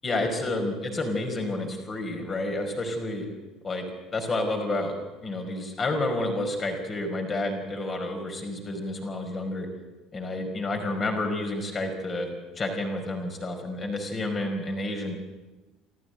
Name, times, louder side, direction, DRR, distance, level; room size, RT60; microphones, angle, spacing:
voice 1, 0.0-3.3 3.6-4.9 5.2-9.7 10.1-12.3 12.5-15.1, left 2 dB, 30° left, 4 dB, 5.0 m, -30 dB
28.5 x 14.0 x 7.8 m, 1.1 s
figure-of-eight pair, 60°, 0 cm